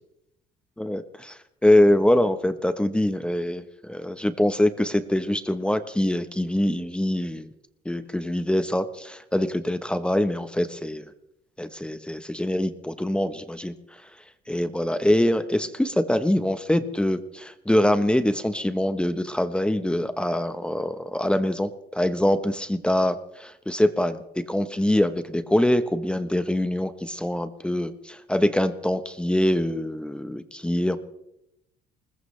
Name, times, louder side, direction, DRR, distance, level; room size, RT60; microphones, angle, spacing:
voice 1, 0.8-7.5 7.8-11.1 11.6-14.0 14.5-31.0, left 1 dB, 5° left, 10 dB, 1.1 m, -24 dB
21.0 x 20.0 x 3.3 m, 0.86 s
cardioid pair, 110°, 17 cm